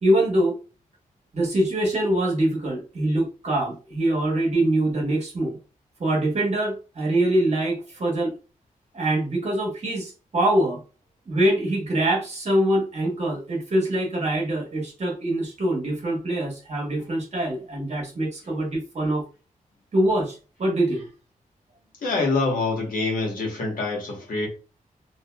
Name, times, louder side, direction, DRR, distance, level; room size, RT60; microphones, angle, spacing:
voice 1, 0.0-0.6 1.3-5.6 6.0-8.3 8.9-10.8 11.3-19.2 19.9-21.1, right 1 dB, 50° right, 1.1 m, -24 dB
voice 2, 22.0-24.5, left 3 dB, 75° left, 1.2 m, -25 dB
2.7 x 2.5 x 2.2 m
cardioid pair, 90°, 14 cm